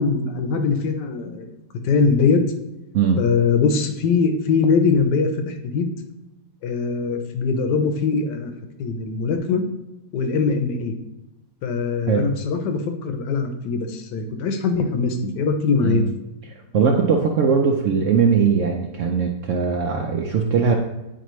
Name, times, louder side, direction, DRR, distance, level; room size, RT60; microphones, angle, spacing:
voice 1, 0.0-1.5 1.8-2.4 3.2-5.9 6.6-8.5 8.8-9.6 10.1-11.0 11.6-16.0, left 5 dB, 75° left, 6 dB, 1.3 m, -21 dB
voice 2, 16.7-20.8, right 6 dB, 70° right, 2 dB, 0.7 m, -20 dB
9.2 x 4.3 x 3.1 m, 1.0 s
omnidirectional pair, 1.9 m